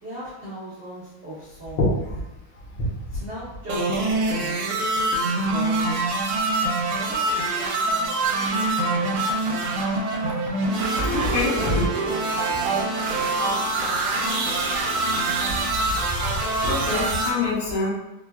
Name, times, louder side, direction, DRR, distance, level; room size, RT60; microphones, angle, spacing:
voice 1, 0.0-1.9 3.1-4.6 4.9-6.0 7.0-9.6 10.8-13.1 13.4-13.6, equal, 50° right, -11 dB, 0.8 m, -39 dB
sound 1, 3.7-17.3, right 2 dB, 80° right, 1.4 m, -24 dB
sound 2, 10.6-15.6, right 2 dB, 20° left, 0.9 m, -38 dB
voice 2, 11.1-11.5 15.7-17.9, left 2 dB, 75° left, -5 dB, 1.7 m, -25 dB
4.4 x 2.4 x 2.2 m, 1.0 s
omnidirectional pair, 2.3 m